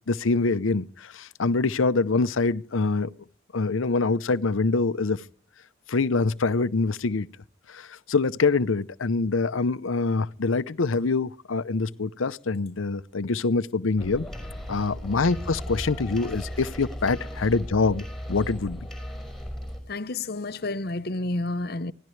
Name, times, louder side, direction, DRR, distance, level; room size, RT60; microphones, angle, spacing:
voice 1, 0.1-3.1 3.5-5.2 5.9-7.3 7.7-14.3 14.7-18.8, left 3 dB, 80° left, 0.7 m, -25 dB
sound 1, 14.0-19.8, equal, ahead, 5.3 m, -36 dB
voice 2, 19.9-21.9, left 2 dB, 50° left, 0.8 m, -30 dB
24.5 x 17.0 x 3.2 m
head